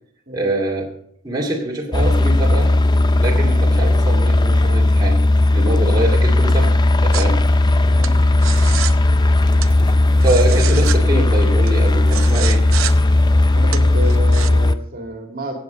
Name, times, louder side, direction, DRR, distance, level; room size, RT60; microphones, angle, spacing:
voice 1, 0.3-0.9 1.2-2.7 3.2-5.2 5.5-6.8 7.0-7.4 10.2-12.7, right 1 dB, 20° right, -2 dB, 2.3 m, -24 dB
sound 1, 1.9-14.8, left 2 dB, 20° left, 0.5 m, -15 dB
sound 2, 7.1-14.5, right 10 dB, 70° right, 0.6 m, -31 dB
voice 2, 10.4-11.0 13.5-15.5, equal, 45° right, 3 dB, 2.3 m, -30 dB
15.5 x 8.6 x 5.2 m, 0.67 s
head